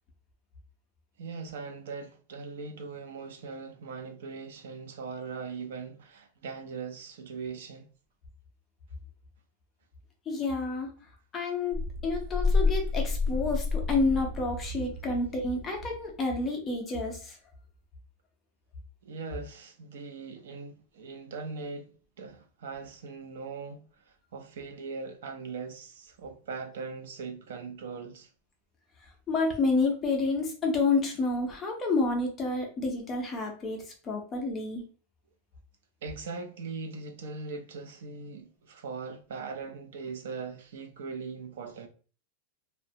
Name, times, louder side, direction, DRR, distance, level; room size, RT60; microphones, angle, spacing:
voice 1, 1.2-7.9 19.0-21.9 22.2-28.3 36.0-41.9, right 4 dB, 75° right, 0.5 m, -40 dB
voice 2, 10.3-10.9 11.3-17.4 29.3-34.8, left 3 dB, 15° left, 0.5 m, -29 dB
sound 1, 11.7-16.1, left 3 dB, 40° right, 0.7 m, -30 dB
2.8 x 2.1 x 2.6 m
supercardioid pair, 180°, 0 cm